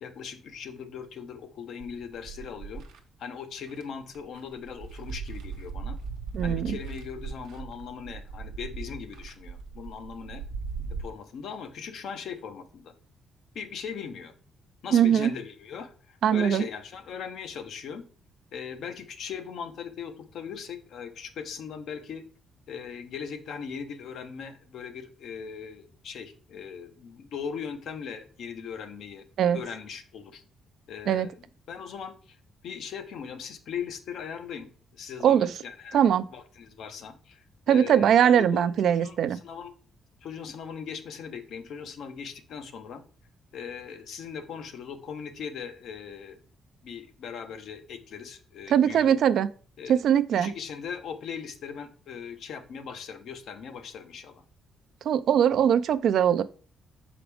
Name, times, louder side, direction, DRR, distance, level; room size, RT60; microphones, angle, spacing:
voice 1, 0.0-2.8 3.2-6.0 6.4-10.4 11.0-12.9 13.5-14.3 14.8-18.1 18.5-22.2 22.7-29.2 29.5-30.4 30.9-32.4 32.6-36.0 36.3-39.7 40.2-43.0 43.5-46.4 46.8-49.2 49.8-50.0 50.3-54.4, left 7 dB, 70° left, 0.8 m, -39 dB
sound 1, 1.8-3.0 3.7-3.8 4.1-11.0, right 5 dB, 85° right, 0.9 m, -38 dB
voice 2, 6.3-6.7 14.9-15.3 16.2-16.6 29.4-29.6 31.1-31.3 35.2-35.5 35.9-36.2 37.7-39.4 48.7-49.5 49.9-50.5 55.0-56.4, right 9 dB, 70° right, 0.3 m, -21 dB
6.0 x 4.9 x 3.4 m
cardioid pair, 90°, 0 cm